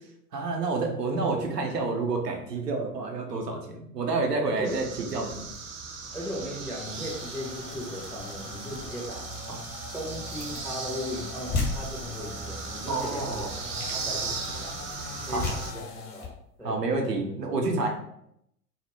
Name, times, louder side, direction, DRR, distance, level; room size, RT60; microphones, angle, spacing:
voice 1, 0.3-5.5 12.9-13.5 15.3-15.5 16.6-17.9, right 3 dB, 85° right, 1 dB, 0.6 m, -29 dB
voice 2, 4.5-4.8 6.1-9.3 9.9-15.9 16.1-16.3 16.6-16.8, equal, 5° left, -5 dB, 0.5 m, -37 dB
sound 1, 4.6-15.7, right 5 dB, 50° right, 0.6 m, -38 dB
sound 2, 6.1-16.3, left 4 dB, 85° left, 0.6 m, -43 dB
sound 3, 8.7-9.1 10.2-10.7 11.1-11.2 11.5-12.4 13.3-13.5 13.8-14.4 15.3-15.8 16.2-16.4, left 3 dB, 40° left, 1.0 m, -33 dB
2.3 x 2.0 x 3.1 m, 0.75 s
figure-of-eight pair, 85°, 47 cm